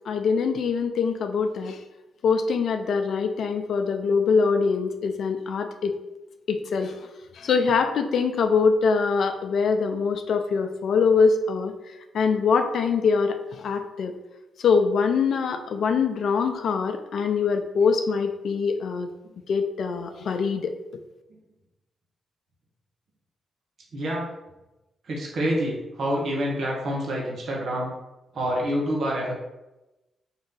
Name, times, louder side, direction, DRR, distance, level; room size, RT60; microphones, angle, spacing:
voice 1, 0.1-1.8 2.2-5.9 6.5-6.9 7.4-11.7 12.1-13.4 13.6-14.1 14.6-19.1 19.5-20.7, left 5 dB, 65° left, 7 dB, 0.4 m, -23 dB
voice 2, 23.9-24.2 25.1-27.9 28.3-29.4, equal, 65° right, -3 dB, 1.0 m, -27 dB
3.9 x 2.6 x 3.7 m, 1.0 s
hypercardioid pair, 40°, 0 cm